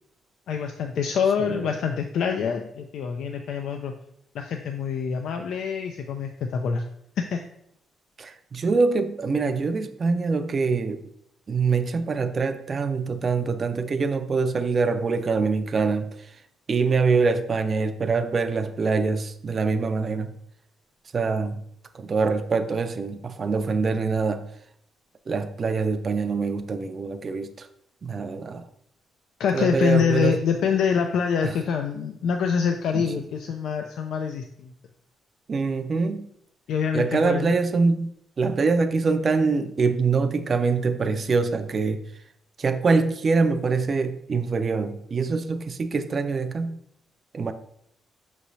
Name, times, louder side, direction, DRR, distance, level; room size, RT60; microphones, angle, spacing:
voice 1, 0.5-3.9 4.3-6.8 7.2-7.4 29.4-34.7 36.7-37.5, left 6 dB, 75° left, 0.3 m, -25 dB
voice 2, 8.2-11.0 11.5-16.1 16.7-20.3 21.1-21.6 21.9-24.4 25.3-27.7 28.0-28.6 29.5-30.4 31.4-31.6 32.9-33.1 35.5-36.3 36.9-38.1 38.4-42.0 42.6-46.8 47.3-47.5, right 4 dB, 40° right, 0.4 m, -24 dB
5.5 x 3.0 x 2.6 m
cardioid pair, 90°, 0 cm